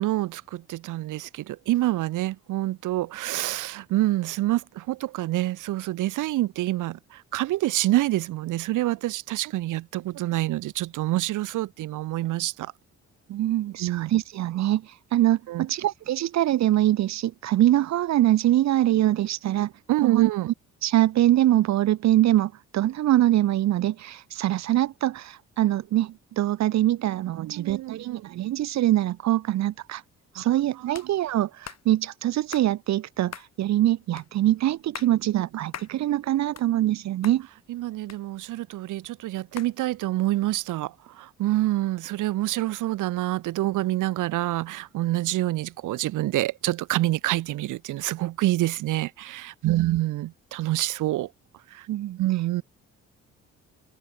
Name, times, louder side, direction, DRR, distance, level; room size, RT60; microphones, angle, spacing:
voice 1, 0.0-12.7 13.8-14.1 15.5-15.7 19.9-20.5 27.4-28.3 30.4-30.5 30.8-30.9 37.7-51.3 51.7-51.9 52.2-52.6, right 16 dB, 85° right, 1.4 m, -27 dB
voice 2, 13.3-19.7 20.0-20.3 20.8-30.0 30.3-37.5 49.6-50.0 51.9-52.2, right 14 dB, 65° right, 0.7 m, -23 dB
sound 1, 30.9-31.1 31.6-31.8 32.5-32.7 33.3-33.5 34.2-34.3 34.8-35.1 35.7-35.9 36.3-37.0 37.2-37.4 38.1-38.7 39.6-39.7, left 9 dB, 60° left, 5.7 m, -40 dB
cardioid pair, 90°, 30 cm